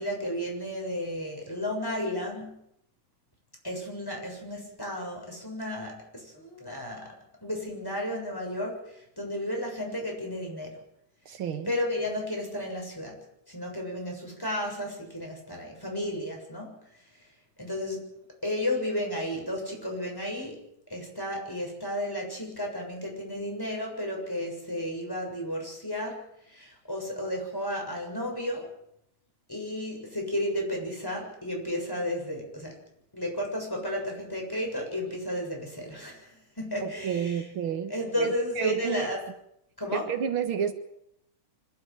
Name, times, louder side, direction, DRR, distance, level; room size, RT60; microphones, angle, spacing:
voice 1, 0.0-2.6 3.6-7.1 7.4-10.8 11.7-13.2 13.5-16.8 17.6-18.0 18.4-20.6 20.9-26.2 26.5-28.7 29.5-32.7 33.1-37.4 37.9-39.2 39.8-40.1, left 1 dB, 10° left, 0 dB, 7.1 m, -33 dB
voice 2, 11.3-11.7 36.8-37.9 38.2-39.1 39.9-40.7, right 8 dB, 85° right, 7 dB, 2.4 m, -30 dB
25.5 x 13.0 x 8.9 m, 0.77 s
omnidirectional pair, 2.2 m